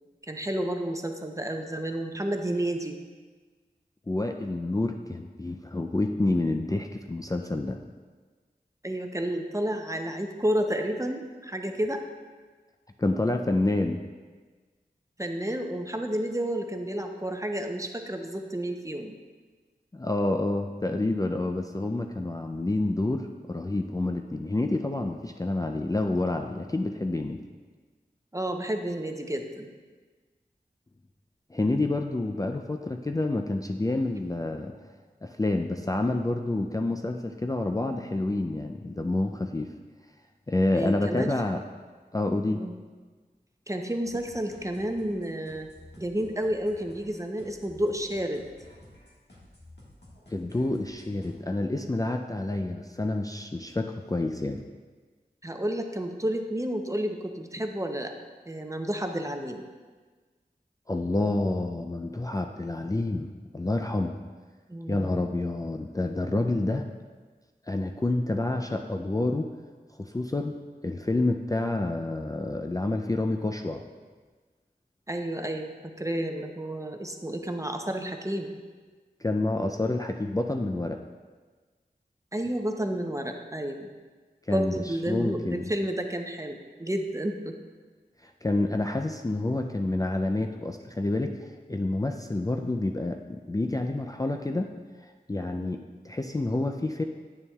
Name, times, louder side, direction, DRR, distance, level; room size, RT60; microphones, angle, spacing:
voice 1, 0.2-2.9 8.8-12.0 15.2-19.1 28.3-29.7 40.7-41.3 42.5-42.7 43.7-45.7 46.0-48.4 55.4-58.1 58.5-59.6 64.7-65.2 75.1-78.5 82.3-83.9 84.5-87.5, right 1 dB, 20° right, 4 dB, 0.6 m, -31 dB
voice 2, 4.1-7.8 13.0-14.0 19.9-27.4 31.5-34.7 35.2-39.7 40.5-41.6 42.1-42.6 50.3-54.6 60.9-64.2 64.9-66.8 67.7-69.5 70.0-70.6 70.8-73.8 79.2-81.0 84.5-85.7 88.2-94.7 95.0-97.0, left 2 dB, 20° left, 3 dB, 0.4 m, -28 dB
sound 1, 44.0-51.3, left 1 dB, 90° left, 1.6 m, -53 dB
8.7 x 6.9 x 2.3 m, 1.4 s
wide cardioid pair, 40°, 17 cm